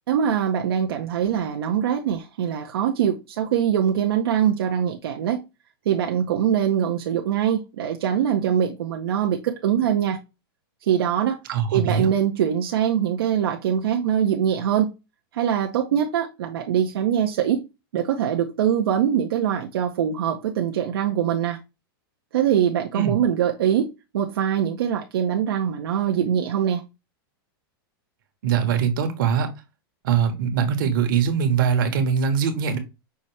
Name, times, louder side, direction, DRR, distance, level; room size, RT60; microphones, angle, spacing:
voice 1, 0.1-5.4 5.9-10.2 10.8-11.4 11.7-14.9 15.3-17.6 17.9-21.6 22.3-26.8, right 9 dB, 80° right, 0.7 m, -23 dB
voice 2, 11.5-12.1 22.9-23.1 28.4-29.5 30.0-32.8, right 7 dB, 60° right, 1.2 m, -22 dB
5.7 x 2.7 x 3.2 m
supercardioid pair, 165°, 12 cm